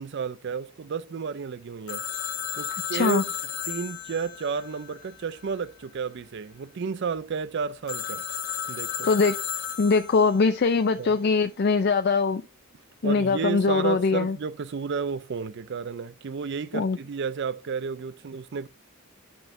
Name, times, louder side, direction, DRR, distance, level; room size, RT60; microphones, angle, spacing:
voice 1, 0.0-2.0 2.6-3.3 3.7-8.2 8.7-9.1 11.0-11.2 13.0-18.7, right 5 dB, 50° right, 0.4 m, -32 dB
Telephone, 1.9-5.5 7.9-10.4, left 9 dB, 75° left, 1.0 m, -34 dB
voice 2, 2.9-3.2 9.0-9.4 9.8-12.4 13.0-14.4 16.7-17.0, left 4 dB, 45° left, 0.4 m, -22 dB
9.8 x 5.4 x 2.6 m
head